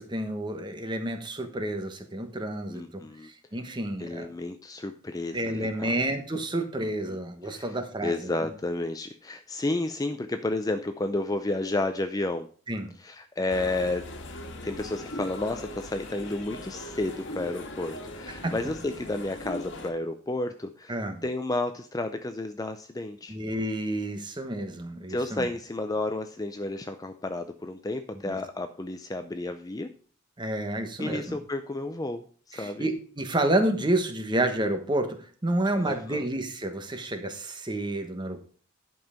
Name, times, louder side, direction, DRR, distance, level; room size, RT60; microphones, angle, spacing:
voice 1, 0.0-2.8 3.2-4.3 5.3-8.3 12.7-12.9 18.4-18.5 20.9-21.2 23.3-25.5 28.2-28.4 30.4-31.4 32.5-35.2 35.4-38.4, right 1 dB, 20° right, 7 dB, 1.1 m, -29 dB
voice 2, 2.7-3.3 4.0-6.0 6.8-7.2 7.4-7.8 8.0-12.5 13.0-14.1 14.6-21.0 21.2-23.4 25.1-29.9 31.0-32.9 35.8-36.3, left 2 dB, 15° left, 8 dB, 0.4 m, -31 dB
sound 1, 13.5-19.9, left 1 dB, 60° left, 1.6 m, -40 dB
10.5 x 5.5 x 5.0 m, 0.43 s
head